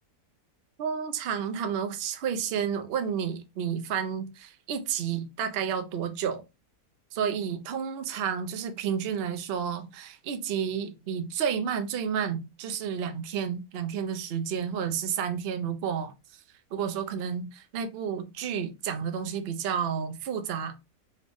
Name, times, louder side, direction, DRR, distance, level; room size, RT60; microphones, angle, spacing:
voice 1, 0.8-6.4 7.1-16.1 16.7-20.9, right 7 dB, 60° right, 0.6 m, -31 dB
4.1 x 2.6 x 3.4 m
omnidirectional pair, 1.8 m